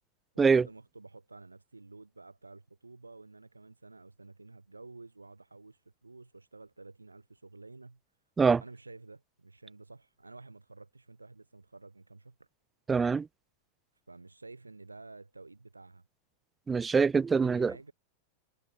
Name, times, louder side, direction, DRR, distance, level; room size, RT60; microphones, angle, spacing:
voice 1, 0.3-8.0 8.6-12.5 14.1-16.0 17.4-17.9, right 3 dB, 80° right, 3.7 m, -51 dB
voice 2, 12.9-13.3 16.7-17.7, right 5 dB, 15° right, 0.4 m, -24 dB
figure-of-eight pair, 90°, 0 cm